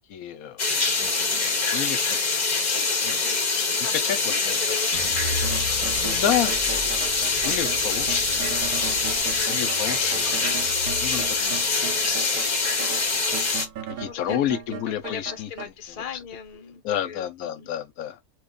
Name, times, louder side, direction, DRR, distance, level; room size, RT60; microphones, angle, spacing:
voice 1, 0.1-0.7 1.0-3.1 3.6-3.7 4.0-4.2 4.4-4.6 5.9-6.6 7.4-8.6 9.4-10.5 11.0-11.6 13.9-15.5 16.6-18.2, left 10 dB, 70° left, 0.9 m, -30 dB
sound 1, 0.6-13.7, left 4 dB, 35° left, 0.8 m, -24 dB
voice 2, 3.1-3.4 3.8-4.0 4.5-5.5 12.7-13.0 14.1-14.4 14.7-17.7, left 8 dB, 55° left, 0.4 m, -38 dB
sound 2, 4.9-15.1 15.6-16.4, equal, 40° right, 0.9 m, -38 dB
sound 3, 5.4-12.5 12.8-15.7, right 8 dB, 70° right, 1.0 m, -37 dB
2.9 x 2.3 x 3.6 m
omnidirectional pair, 1.7 m